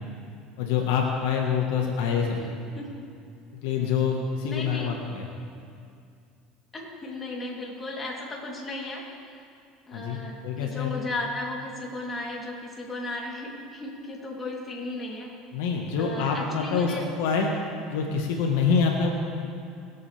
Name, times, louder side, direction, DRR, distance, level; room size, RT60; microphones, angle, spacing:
voice 1, 0.6-2.4 2.7-2.8 3.6-5.3 9.9-10.9 15.5-17.5 17.9-19.1, left 6 dB, 80° left, 1 dB, 1.5 m, -26 dB
voice 2, 4.4-4.9 6.7-9.0 9.9-10.3 10.6-15.3 16.0-17.0, left 2 dB, 25° left, -3 dB, 3.3 m, -35 dB
23.0 x 8.6 x 3.5 m, 2.4 s
supercardioid pair, 95°, 0 cm